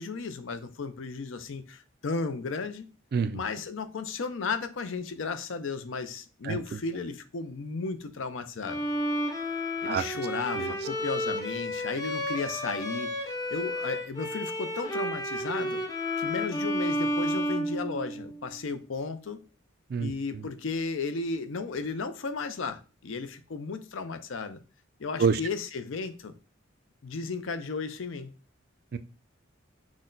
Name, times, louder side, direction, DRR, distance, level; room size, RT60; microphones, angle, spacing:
voice 1, 0.0-2.9 3.3-8.9 9.8-15.8 16.2-19.4 20.0-24.6 25.0-26.3 27.0-28.3, left 4 dB, 75° left, 0.5 m, -34 dB
voice 2, 3.1-3.4 6.4-6.6 9.9-10.0 10.6-10.7 19.9-20.1 25.2-25.4 28.9-29.0, right 5 dB, 50° right, 0.3 m, -26 dB
Bowed string instrument, 8.6-18.5, equal, 20° left, 0.5 m, -31 dB
6.1 x 2.1 x 3.8 m
head